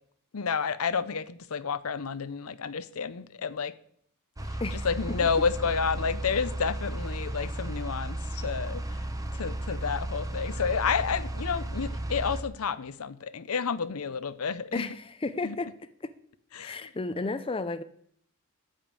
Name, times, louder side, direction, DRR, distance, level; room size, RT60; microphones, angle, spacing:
voice 1, 0.3-3.7 4.5-9.0 9.3-14.9 15.4-15.6 16.5-16.8, left 6 dB, 80° left, 0.7 m, -30 dB
sound 1, 4.4-12.4, right 1 dB, 15° right, 1.0 m, -34 dB
voice 2, 14.7-15.7 16.0-16.1 16.6-17.8, left 3 dB, 25° left, 0.5 m, -33 dB
13.0 x 5.2 x 8.9 m
head